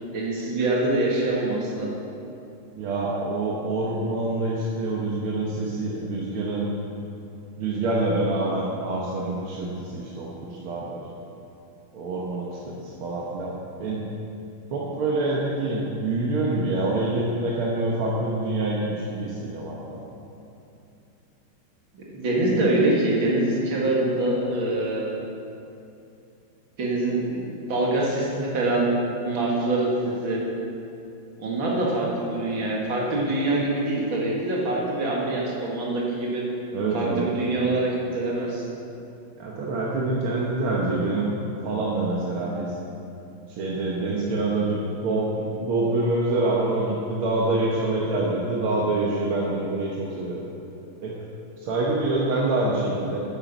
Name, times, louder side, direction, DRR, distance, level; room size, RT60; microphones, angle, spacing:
voice 1, 0.1-1.9 21.9-25.1 26.8-28.9 29.2-30.4 31.4-36.4 36.9-38.6, right 2 dB, 65° right, -3 dB, 2.7 m, -24 dB
voice 2, 2.8-6.7 7.6-11.0 11.9-13.5 13.8-14.0 14.7-20.0 36.7-37.3 39.4-41.3 41.6-42.7 43.5-50.4 51.0-51.1 51.6-53.2, right 2 dB, 85° right, -4 dB, 2.0 m, -26 dB
9.7 x 9.2 x 6.1 m, 2.7 s
omnidirectional pair, 2.3 m